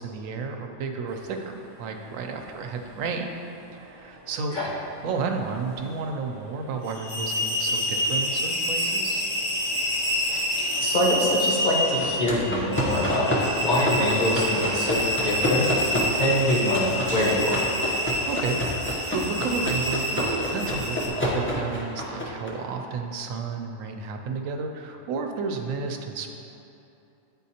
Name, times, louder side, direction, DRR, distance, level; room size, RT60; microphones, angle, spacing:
voice 1, 0.0-3.4 3.7-4.6 5.0-9.2 18.0-26.3, right 4 dB, 85° right, 4 dB, 1.0 m, -32 dB
sound 1, 1.1-15.3, right 1 dB, 35° right, 0.6 m, -45 dB
sound 2, 6.8-21.1, equal, 70° left, 1.3 m, -28 dB
voice 2, 10.3-13.3 13.6-17.7, left 1 dB, 40° left, -4 dB, 1.0 m, -25 dB
sound 3, 12.0-22.5, equal, 10° left, 0.7 m, -29 dB
9.1 x 4.1 x 2.8 m, 2.9 s
omnidirectional pair, 1.3 m